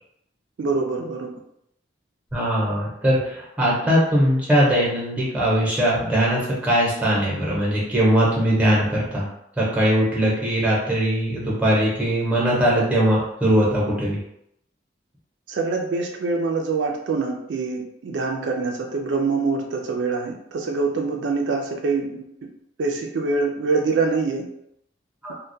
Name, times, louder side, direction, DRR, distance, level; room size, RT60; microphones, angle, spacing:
voice 1, 0.6-1.3 15.5-22.2 22.8-24.5, right 4 dB, 75° right, 2 dB, 0.3 m, -24 dB
voice 2, 2.3-9.3 9.6-14.2 25.2-25.3, equal, 10° right, -5 dB, 0.8 m, -20 dB
2.2 x 2.1 x 2.6 m, 0.76 s
head